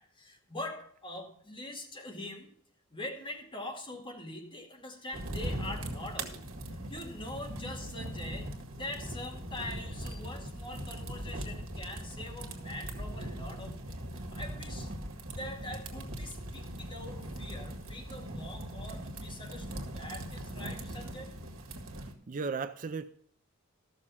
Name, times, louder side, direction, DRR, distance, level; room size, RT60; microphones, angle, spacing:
voice 1, 0.0-2.5 2.9-6.4 6.9-14.9 15.3-21.4, left 1 dB, 25° left, 1 dB, 2.2 m, -43 dB
sound 1, 5.1-22.1, right 1 dB, 70° right, 1.9 m, -40 dB
voice 2, 22.0-23.0, right 4 dB, 40° right, 11 dB, 0.4 m, -36 dB
13.5 x 6.7 x 5.5 m, 0.63 s
head